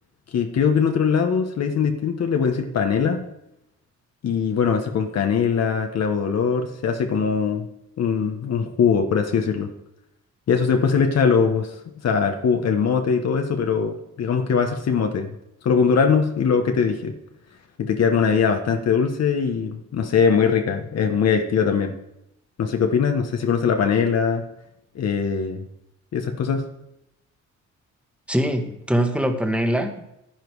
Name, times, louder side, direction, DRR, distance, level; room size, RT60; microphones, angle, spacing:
voice 1, 0.3-3.2 4.2-7.7 8.0-9.7 10.5-11.8 12.0-15.3 15.6-17.1 17.8-21.9 22.6-24.4 24.9-25.6 26.1-26.7, left 6 dB, 55° left, 5 dB, 1.3 m, -21 dB
voice 2, 28.3-30.0, equal, 5° right, 5 dB, 1.6 m, -23 dB
10.5 x 10.0 x 4.8 m, 0.83 s
cardioid pair, 90°, 30 cm